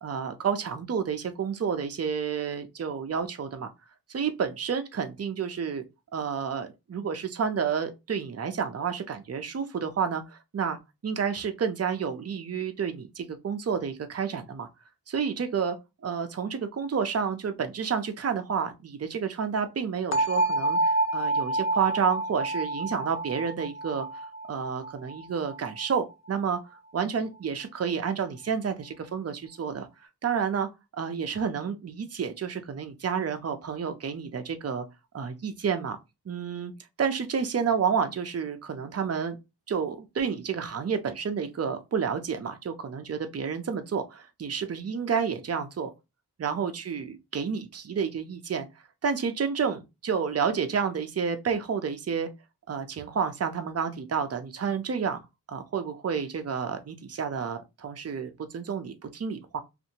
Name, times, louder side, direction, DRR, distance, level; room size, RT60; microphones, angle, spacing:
voice 1, 0.0-3.7 4.1-5.8 6.1-14.7 15.1-15.8 16.0-24.1 24.5-26.6 26.9-29.9 30.2-30.7 31.0-34.8 35.1-36.0 36.3-36.7 37.0-39.4 39.7-45.9 46.4-48.7 49.0-52.3 52.7-55.2 55.5-59.6, right 6 dB, 40° right, 0.5 m, -30 dB
sound 1, 20.1-26.0, right 2 dB, 45° left, 0.5 m, -28 dB
2.6 x 2.5 x 2.8 m
cardioid pair, 55°, 39 cm